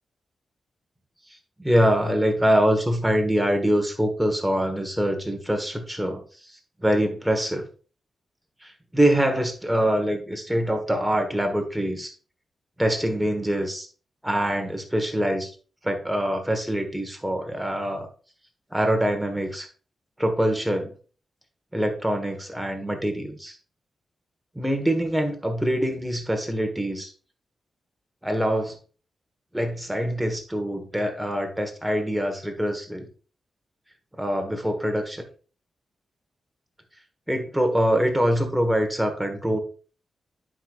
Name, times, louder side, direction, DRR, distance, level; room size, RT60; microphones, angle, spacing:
voice 1, 1.6-6.5 6.8-7.6 8.6-12.1 12.8-13.9 14.2-15.5 15.8-18.1 18.7-19.7 20.2-20.9 21.7-23.5 24.5-27.1 28.2-28.8 29.5-33.1 34.2-35.2 37.3-39.6, equal, 5° right, 5 dB, 1.3 m, -24 dB
9.9 x 4.5 x 2.4 m, 0.38 s
wide cardioid pair, 110°, 0 cm